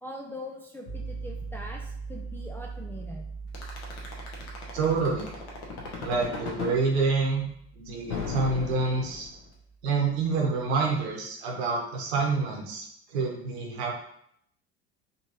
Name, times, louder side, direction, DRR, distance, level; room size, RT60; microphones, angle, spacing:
voice 1, 0.0-3.3, left 1 dB, 5° left, -1 dB, 0.4 m, -42 dB
sound 1, 0.9-10.7, right 4 dB, 80° left, 1.2 m, -42 dB
sound 2, 3.5-6.8 8.1-9.5, left 6 dB, 45° left, 1.1 m, -35 dB
voice 2, 4.7-5.3 6.0-7.5 7.7-9.3 9.8-13.9, right 4 dB, 65° right, 0 dB, 1.1 m, -27 dB
4.1 x 2.9 x 2.9 m, 0.70 s
figure-of-eight pair, 70°, 35 cm